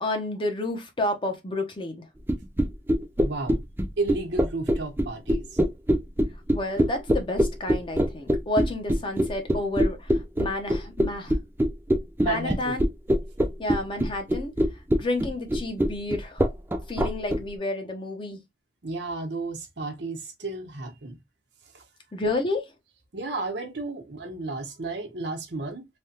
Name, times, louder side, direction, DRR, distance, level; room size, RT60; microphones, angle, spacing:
voice 1, 0.0-2.0 6.5-11.4 12.2-12.9 13.6-14.5 14.9-16.4 16.9-18.4 22.1-22.7, left 2 dB, 30° left, 0.7 m, -30 dB
sound 1, 2.3-17.4, equal, 10° right, 0.3 m, -23 dB
voice 2, 3.2-3.6 4.0-5.6 12.2-12.8 18.8-21.2 21.7-21.8 23.1-25.8, right 3 dB, 80° right, 0.9 m, -32 dB
3.3 x 2.2 x 2.7 m
head